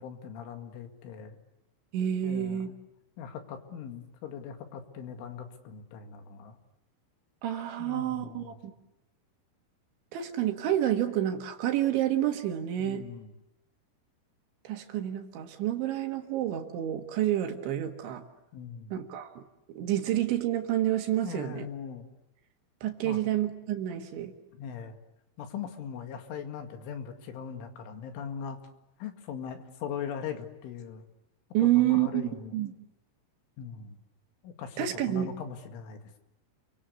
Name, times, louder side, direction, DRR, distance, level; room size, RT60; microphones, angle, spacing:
voice 1, 0.0-1.4 2.2-2.7 3.2-6.6 7.8-8.6 12.8-13.3 18.5-18.9 21.2-22.1 23.0-23.2 24.5-25.0 25.4-28.6 29.0-31.1 31.6-32.6 33.6-34.0 34.4-36.2, left 7 dB, 80° left, 6 dB, 4.6 m, -40 dB
voice 2, 1.9-2.7 7.4-8.5 10.1-13.0 14.7-18.2 18.9-19.4 19.8-21.7 22.8-24.3 31.5-32.7 34.8-35.3, right 12 dB, 70° right, 5 dB, 3.9 m, -29 dB
29.5 x 24.0 x 8.2 m, 0.92 s
omnidirectional pair, 5.6 m